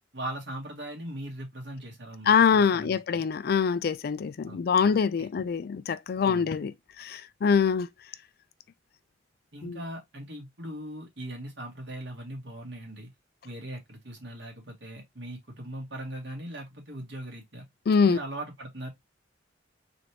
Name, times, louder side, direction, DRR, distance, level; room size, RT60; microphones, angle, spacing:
voice 1, 0.1-3.2 4.5-5.3 6.2-6.5 9.5-13.1 13.4-17.7 18.0-18.9, right 1 dB, 65° right, 2.0 m, -40 dB
voice 2, 2.3-7.9 9.6-9.8 17.9-18.2, left 6 dB, 55° left, 0.4 m, -24 dB
3.9 x 3.4 x 3.0 m
head